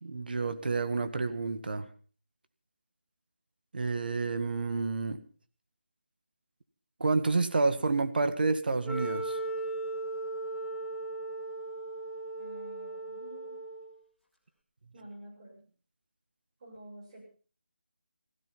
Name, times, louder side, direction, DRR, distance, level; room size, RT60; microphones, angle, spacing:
voice 1, 0.0-1.9 3.7-5.2 7.0-9.4, right 3 dB, 55° right, 10 dB, 1.8 m, -29 dB
Wind instrument woodwind instrument, 8.8-13.9, right 2 dB, ahead, 2.0 m, -37 dB
voice 2, 12.4-13.6 14.9-15.7 16.6-17.4, right 1 dB, 35° right, -1 dB, 6.9 m, -49 dB
16.5 x 15.5 x 5.7 m, 0.42 s
figure-of-eight pair, 165°, 6 cm